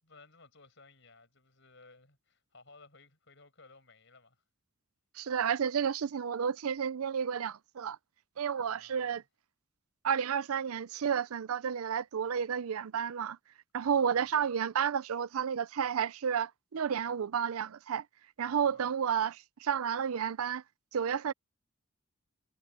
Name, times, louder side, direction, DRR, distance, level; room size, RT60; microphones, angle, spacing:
voice 1, 0.0-4.4 8.6-9.2 13.7-14.3 18.4-18.9, left 3 dB, 55° left, 7.0 m, -59 dB
voice 2, 5.2-8.0 8.4-9.2 10.0-13.4 13.7-18.0 18.4-20.6 20.9-21.3, right 7 dB, 75° right, 0.5 m, -31 dB
head